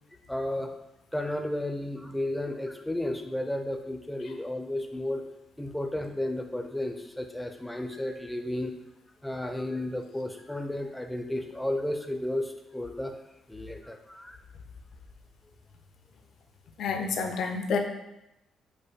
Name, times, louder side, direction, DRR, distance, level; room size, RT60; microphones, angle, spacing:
voice 1, 0.3-0.7 1.1-5.2 5.6-8.7 9.2-13.1 13.5-14.4, left 1 dB, 5° left, 5 dB, 0.5 m, -33 dB
voice 2, 16.8-17.8, left 5 dB, 70° left, 5 dB, 0.6 m, -29 dB
5.1 x 2.1 x 4.4 m, 0.90 s
cardioid pair, 90°, 0 cm